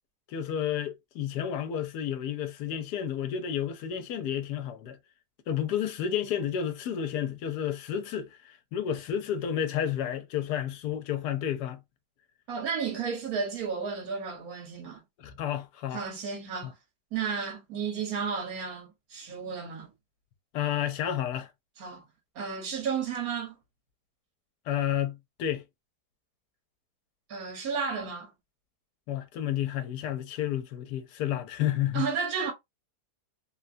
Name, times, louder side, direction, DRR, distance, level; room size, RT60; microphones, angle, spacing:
voice 1, 0.3-5.0 5.5-11.8 15.2-16.0 16.6-16.7 20.5-21.5 24.7-25.6 29.1-32.1, left 10 dB, 75° left, 1.1 m, -31 dB
voice 2, 12.5-15.0 15.9-16.7 17.1-19.9 21.8-22.0 22.3-23.5 27.3-28.3 31.9-32.5, right 6 dB, 65° right, 1.6 m, -32 dB
3.2 x 2.2 x 2.5 m
omnidirectional pair, 1.7 m